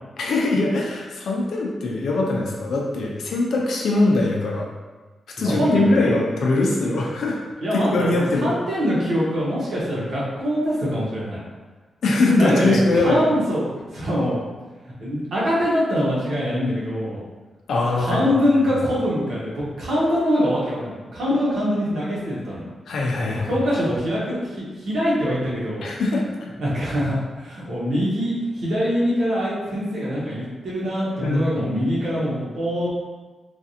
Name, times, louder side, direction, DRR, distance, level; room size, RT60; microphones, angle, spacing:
voice 1, 0.2-4.7 5.4-7.4 7.9-8.5 12.0-13.3 17.7-18.3 18.5-18.6 22.9-23.5 25.8-26.5 31.2-31.4, left 2 dB, 80° left, -1 dB, 0.6 m, -21 dB
voice 2, 5.4-6.0 7.6-8.1 8.4-11.4 12.4-13.6 13.9-14.4 15.0-17.2 18.0-22.6 23.2-25.8 26.6-32.9, equal, 70° right, -7 dB, 1.2 m, -23 dB
3.3 x 2.5 x 2.7 m, 1.3 s
wide cardioid pair, 120°, 0 cm